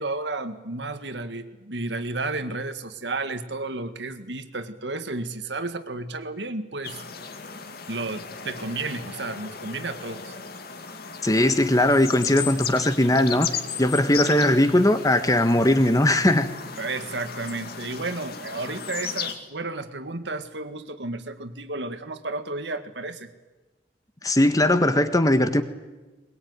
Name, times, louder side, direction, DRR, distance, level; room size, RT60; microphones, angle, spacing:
voice 1, 0.0-7.0 7.9-10.4 16.8-23.3, right 3 dB, 85° right, 9 dB, 1.9 m, -32 dB
sound 1, 6.8-19.3, left 6 dB, 60° left, 2.2 m, -36 dB
voice 2, 11.2-13.5 13.8-16.5 24.2-25.6, left 1 dB, 20° left, 10 dB, 1.5 m, -19 dB
21.5 x 21.5 x 9.7 m, 1.2 s
head